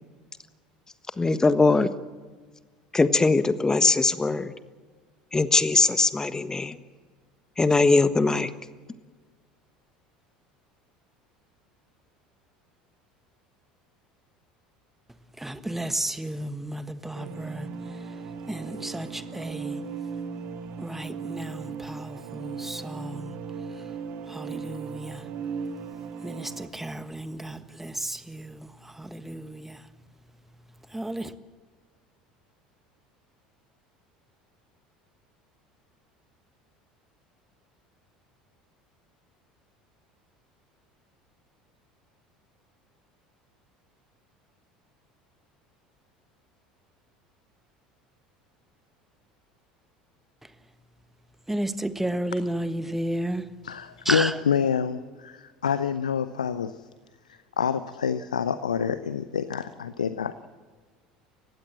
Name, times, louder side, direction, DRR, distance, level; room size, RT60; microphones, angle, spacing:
voice 1, 1.2-1.9 2.9-4.5 5.3-6.8 7.6-8.5, left 3 dB, 15° left, 1.3 m, -21 dB
voice 2, 15.4-17.7 18.5-19.8 20.8-23.3 24.3-25.2 26.2-28.6 29.0-29.8 30.9-31.3 51.5-53.4 54.1-54.3, right 1 dB, 5° right, 1.5 m, -32 dB
sound 1, 17.1-26.7, right 5 dB, 50° right, 2.0 m, -37 dB
voice 3, 53.6-56.8 57.3-60.5, left 7 dB, 80° left, 0.7 m, -27 dB
29.5 x 16.0 x 7.6 m
figure-of-eight pair, 70°, 4 cm